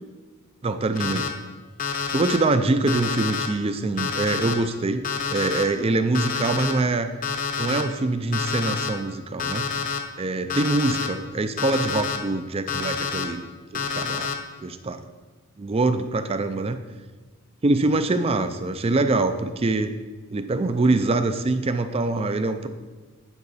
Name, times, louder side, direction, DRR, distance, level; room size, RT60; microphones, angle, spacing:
voice 1, 0.6-1.3 2.0-7.1 7.6-9.7 10.2-13.5 13.7-14.3 14.6-15.0 15.6-16.8 17.6-20.0 20.3-22.7, right 2 dB, 25° right, 10 dB, 0.4 m, -24 dB
Alarm, 1.0-1.3 1.8-2.4 2.9-3.5 4.0-4.5 5.0-5.6 6.1-6.7 7.2-7.8 8.3-8.9 9.4-10.0 10.5-11.1 11.6-12.2 12.7-13.2 13.7-14.3, left 6 dB, 35° left, 0.7 m, -28 dB
9.4 x 5.7 x 4.1 m, 1.3 s
head